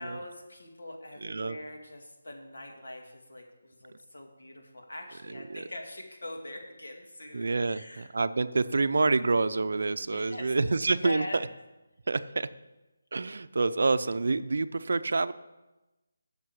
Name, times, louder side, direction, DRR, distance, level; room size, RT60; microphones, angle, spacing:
voice 1, 0.0-8.1 10.1-10.5 10.8-11.4, left 1 dB, 85° left, 2 dB, 2.3 m, -43 dB
voice 2, 1.2-1.6 5.3-5.6 7.3-11.4 12.1-12.5 13.1-15.3, right 3 dB, 65° right, 13 dB, 0.5 m, -27 dB
7.6 x 6.7 x 8.2 m, 1.1 s
figure-of-eight pair, 165°, 0 cm